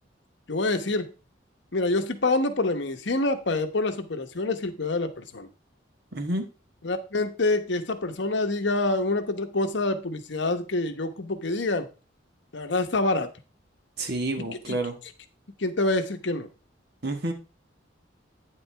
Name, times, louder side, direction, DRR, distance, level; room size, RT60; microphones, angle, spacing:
voice 1, 0.5-1.1 1.7-5.5 6.8-11.9 12.5-13.3 14.7-14.8 15.6-16.5, left 2 dB, 65° left, 8 dB, 1.0 m, -26 dB
voice 2, 6.1-6.5 14.0-15.0 17.0-17.3, right 2 dB, 55° right, 6 dB, 1.5 m, -29 dB
9.1 x 7.7 x 3.4 m, 0.32 s
head